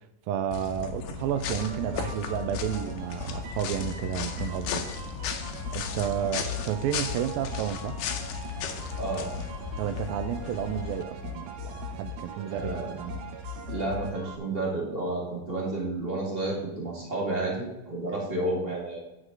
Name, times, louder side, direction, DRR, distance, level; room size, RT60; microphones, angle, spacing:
voice 1, 0.3-4.8 5.7-8.0 9.8-13.2, right 10 dB, 85° right, 10 dB, 2.4 m, -31 dB
sound 1, 0.5-11.0, left 7 dB, 75° left, 2.1 m, -36 dB
sound 2, 1.4-14.4, left 2 dB, 70° right, 2.2 m, -39 dB
voice 2, 8.9-9.4 12.5-12.9 13.7-19.0, right 2 dB, 30° right, -4 dB, 1.1 m, -31 dB
9.7 x 6.4 x 3.8 m, 0.98 s
omnidirectional pair, 4.1 m